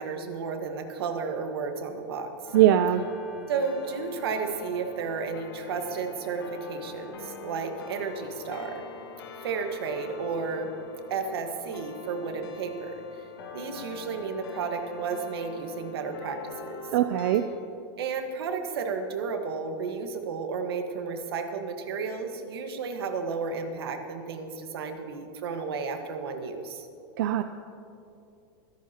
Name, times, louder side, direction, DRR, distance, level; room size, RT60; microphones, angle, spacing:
voice 1, 0.0-2.5 3.5-8.8 9.4-10.7 11.1-16.9 18.0-26.9, right 5 dB, 85° right, 5 dB, 1.6 m, -33 dB
sound 1, 2.5-17.4, left 4 dB, 80° left, 1.7 m, -43 dB
voice 2, 2.5-3.0 16.9-17.4 27.2-27.4, right 12 dB, 60° right, 9 dB, 0.5 m, -21 dB
23.5 x 12.0 x 3.0 m, 2.7 s
supercardioid pair, 160°, 12 cm